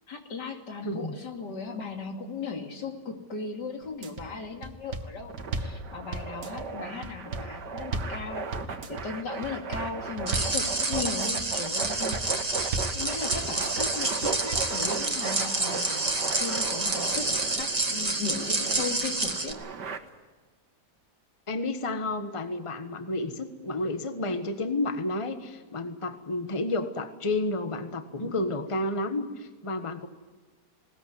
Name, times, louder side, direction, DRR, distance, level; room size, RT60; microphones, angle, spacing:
voice 1, 0.1-16.1 16.4-19.6 28.2-28.3, left 4 dB, 85° left, 3 dB, 3.2 m, -37 dB
voice 2, 0.8-1.2 21.5-30.1, left 2 dB, 20° left, 8 dB, 1.3 m, -31 dB
sound 1, 3.8-4.2 4.6-5.8 6.1-6.7 7.0-8.2 8.5-9.1 9.4-9.9 10.2-10.6 10.9-11.4 11.8-12.3 12.6-13.0 13.3-13.8 14.2-14.7, right 3 dB, 60° right, 2.0 m, -34 dB
sound 2, 5.3-20.0, right 5 dB, 85° right, 2.1 m, -37 dB
sound 3, 10.3-19.5, right 2 dB, 25° right, 1.7 m, -29 dB
20.5 x 19.0 x 9.5 m, 1.3 s
omnidirectional pair, 1.8 m